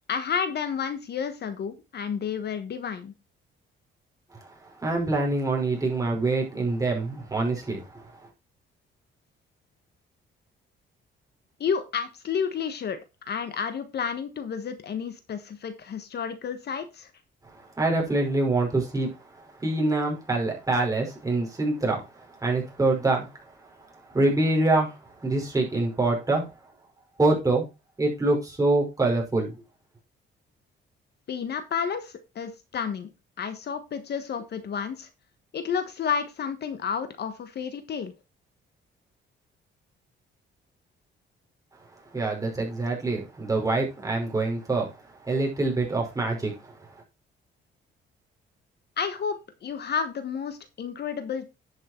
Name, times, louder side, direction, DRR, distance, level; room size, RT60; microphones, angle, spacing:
voice 1, 0.1-3.1 11.6-13.0 13.3-17.1 31.3-33.1 33.4-35.1 35.5-38.1 49.0-51.5, left 6 dB, 55° left, 1.4 m, -31 dB
voice 2, 4.8-8.1 17.8-19.1 19.6-23.3 24.1-26.5 27.2-27.6 28.0-29.5 42.1-44.9 45.2-46.7, right 2 dB, 15° right, 5.4 m, -25 dB
10.5 x 6.6 x 4.5 m
cardioid pair, 120°, 21 cm